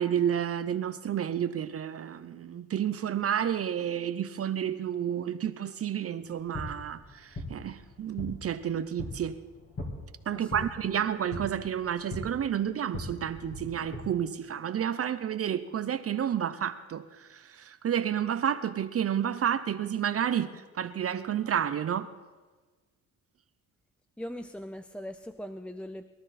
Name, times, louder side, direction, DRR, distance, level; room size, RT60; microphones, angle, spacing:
voice 1, 0.0-9.4 10.3-22.1, right 9 dB, 45° right, 0.6 m, -30 dB
sound 1, 6.2-14.0, left 1 dB, 45° left, 3.5 m, -41 dB
voice 2, 10.3-10.7 24.2-26.1, equal, 5° left, 0.5 m, -40 dB
22.5 x 12.5 x 4.2 m
cardioid pair, 105°, 33 cm